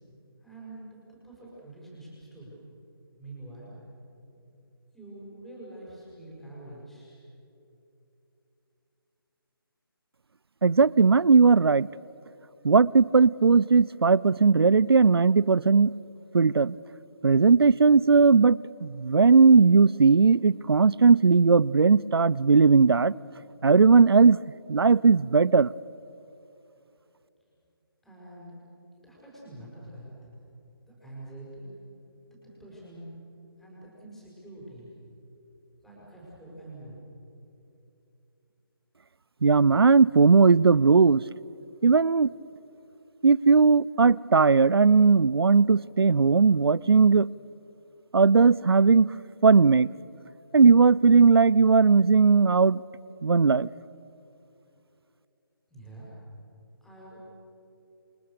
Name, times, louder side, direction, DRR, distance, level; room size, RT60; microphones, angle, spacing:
voice 1, 0.4-2.6 3.2-3.7 4.9-7.2 28.0-28.6 28.9-30.3 30.8-31.7 32.2-33.1 33.6-34.9 35.8-37.0 55.7-56.1 56.8-57.2, right 1 dB, ahead, -6 dB, 6.1 m, -46 dB
voice 2, 10.6-11.9 12.6-15.9 16.3-16.8 17.2-23.1 23.6-24.4 24.7-25.7 39.4-41.2 41.8-42.3 43.2-47.3 48.1-49.1 49.4-49.9 50.5-52.8 53.2-53.7, right 4 dB, 80° right, 24 dB, 0.5 m, -18 dB
29.0 x 24.5 x 6.8 m, 2.8 s
figure-of-eight pair, 155°, 13 cm